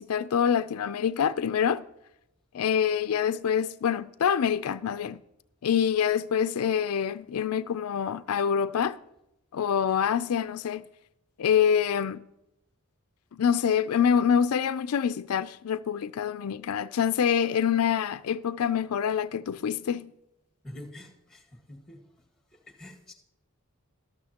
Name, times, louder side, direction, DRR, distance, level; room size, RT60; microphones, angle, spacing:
voice 1, 0.0-1.8 2.5-5.2 5.6-9.0 9.5-10.8 11.4-12.2 13.3-20.1, left 8 dB, 85° left, 0.4 m, -26 dB
voice 2, 20.6-22.0 22.5-23.1, left 1 dB, 5° left, 1.9 m, -46 dB
13.0 x 13.0 x 2.9 m
head